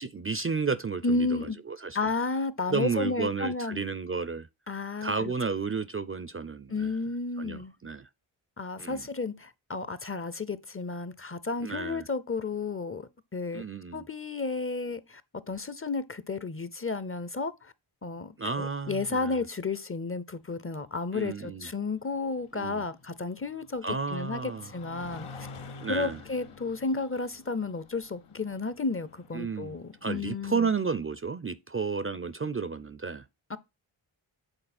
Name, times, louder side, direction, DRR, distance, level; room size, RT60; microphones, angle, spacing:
voice 1, 0.0-2.1 2.7-4.5 5.0-7.0 7.4-8.1 8.8-9.1 11.6-12.1 13.5-14.0 18.4-19.4 21.1-21.7 22.5-22.9 23.8-24.7 25.8-26.2 29.3-29.8 30.0-33.2, right 5 dB, 30° right, 0.5 m, -32 dB
voice 2, 1.0-1.6 1.9-3.8 4.7-5.3 6.7-7.7 8.6-13.6 13.9-15.2 15.5-17.7 18.0-25.3 25.9-30.7 33.5-33.6, left 3 dB, 25° left, 0.6 m, -32 dB
sound 1, 20.4-31.0, left 4 dB, 85° left, 1.0 m, -50 dB
7.9 x 4.0 x 4.3 m
cardioid pair, 55°, 49 cm